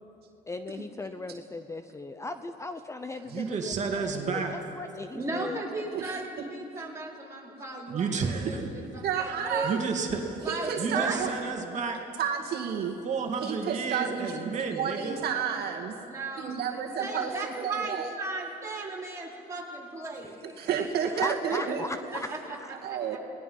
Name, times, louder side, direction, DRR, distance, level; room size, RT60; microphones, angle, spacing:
voice 1, 0.5-4.4 4.8-5.6 20.2-20.7 21.1-22.7, left 2 dB, 15° left, 9 dB, 0.8 m, -38 dB
voice 2, 3.3-4.7 7.9-8.7 9.6-10.5 10.8-12.0 13.0-15.2, right 5 dB, 45° right, 2 dB, 2.5 m, -31 dB
voice 3, 5.1-8.6 8.9-9.7 10.4-11.3 16.0-20.3 21.4-21.7 22.1-22.4 22.9-23.0, right 3 dB, 15° right, -5 dB, 4.7 m, -36 dB
voice 4, 9.0-9.8 10.5-11.3 12.2-13.0 13.4-14.4 14.7-15.9 16.4-17.3 17.6-18.1 20.6-21.9 22.8-23.2, right 7 dB, 70° right, 1 dB, 2.0 m, -30 dB
28.5 x 19.5 x 5.6 m, 3.0 s
cardioid pair, 110°, 17 cm